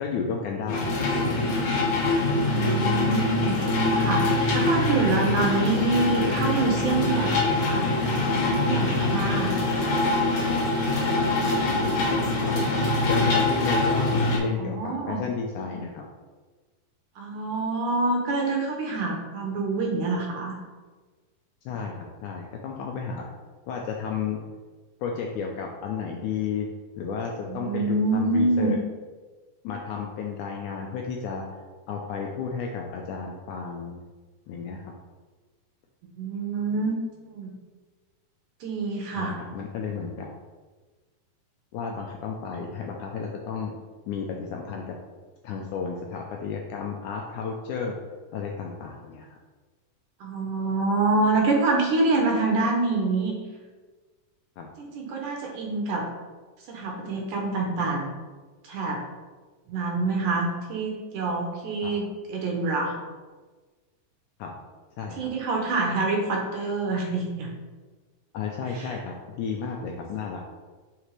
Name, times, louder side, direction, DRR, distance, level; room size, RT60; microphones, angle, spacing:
voice 1, 0.0-1.6 11.2-12.7 13.1-16.0 21.7-21.9 22.2-23.3 23.7-24.5 25.0-26.7 27.0-28.8 29.6-31.4 31.9-34.0 34.5-34.9 39.2-40.3 41.7-43.7 44.1-45.0 45.4-48.0 48.3-49.3 54.6-54.7 61.8-61.9 64.4-64.5 65.0-65.3 68.3-70.5, left 5 dB, 80° left, 1 dB, 1.8 m, -33 dB
sound 1, 0.7-14.4, left 2 dB, 65° left, 2.4 m, -24 dB
voice 2, 2.3-7.9 8.3-9.5 14.6-15.2 17.2-20.6 27.5-28.7 36.2-37.0 37.3-37.5 38.6-39.4 50.2-53.3 54.8-56.1 56.7-58.1 58.6-59.0 59.7-63.0 65.2-67.5 68.7-68.9, right 3 dB, 75° right, 0 dB, 2.2 m, -26 dB
6.5 x 5.0 x 3.2 m, 1.3 s
omnidirectional pair, 4.0 m